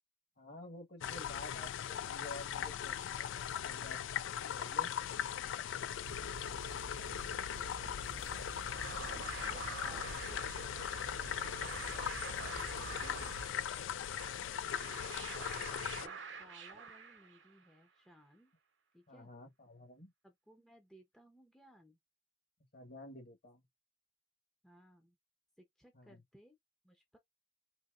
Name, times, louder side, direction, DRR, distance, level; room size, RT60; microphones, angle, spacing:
voice 1, 0.4-3.3 3.6-4.0 4.3-4.9 9.8-10.1 12.4-13.5 19.1-20.1 22.7-23.6 25.9-26.2, left 1 dB, 50° left, 1.3 m, -51 dB
sound 1, 1.0-16.1, left 9 dB, 75° left, 0.3 m, -39 dB
sound 2, 6.0-13.5, right 4 dB, 50° right, 0.4 m, -50 dB
voice 2, 6.7-8.9 9.4-11.9 15.7-18.5 18.9-19.3 20.2-22.0 24.6-25.2 25.6-26.6 26.8-27.2, equal, 5° left, 0.6 m, -62 dB
sound 3, 8.3-17.7, right 5 dB, 65° right, 0.9 m, -48 dB
4.1 x 2.8 x 2.4 m
head